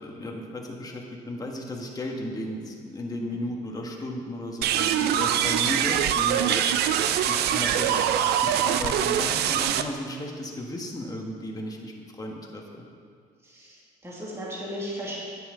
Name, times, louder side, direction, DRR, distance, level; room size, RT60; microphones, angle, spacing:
voice 1, 0.0-6.7 7.3-11.9 12.2-12.9, left 1 dB, 20° left, 0 dB, 1.5 m, -34 dB
sound 1, 4.6-9.8, right 10 dB, 75° right, 0.5 m, -23 dB
voice 2, 13.4-15.1, equal, 15° right, -6 dB, 2.3 m, -36 dB
9.9 x 9.0 x 3.8 m, 2.1 s
cardioid pair, 110°, 17 cm